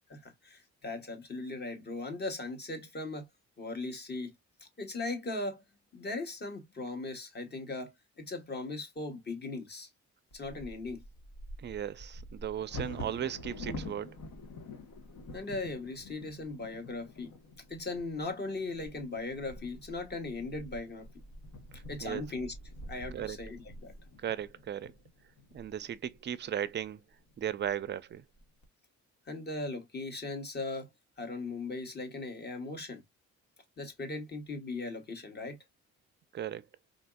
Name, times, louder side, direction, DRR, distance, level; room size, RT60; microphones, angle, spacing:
voice 1, 0.1-3.3 3.6-4.3 4.8-5.6 5.9-9.9 10.3-11.0 15.3-17.3 17.7-21.1 21.9-22.5 22.9-23.9 29.3-30.9 31.2-33.0 33.8-35.6, left 2 dB, 35° left, 1.1 m, -38 dB
Bird vocalization bird call bird song / Wind / Thunder, 10.3-26.2 26.8-26.9 27.3-27.7 28.1-28.6, left 1 dB, 70° left, 1.2 m, -47 dB
voice 2, 11.6-14.2 21.7-22.2 23.1-23.4 24.2-24.9 25.5-27.0 27.4-28.2 36.3-36.7, right 10 dB, 35° right, 0.4 m, -36 dB
3.9 x 2.6 x 2.2 m
cardioid pair, 90°, 30 cm